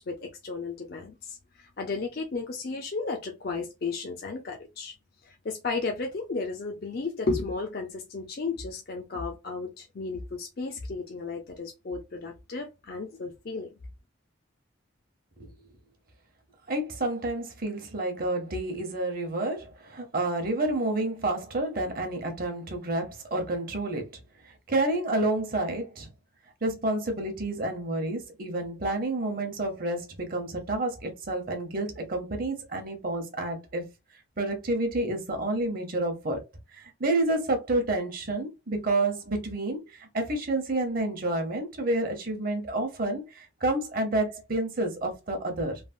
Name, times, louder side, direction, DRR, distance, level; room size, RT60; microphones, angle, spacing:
voice 1, 0.0-4.9 5.2-13.7, left 3 dB, 50° left, 0.5 m, -34 dB
voice 2, 16.7-24.2 24.4-26.1 26.6-33.9 34.4-36.4 36.7-45.8, right 2 dB, 45° right, 0.8 m, -29 dB
3.2 x 2.0 x 2.5 m
head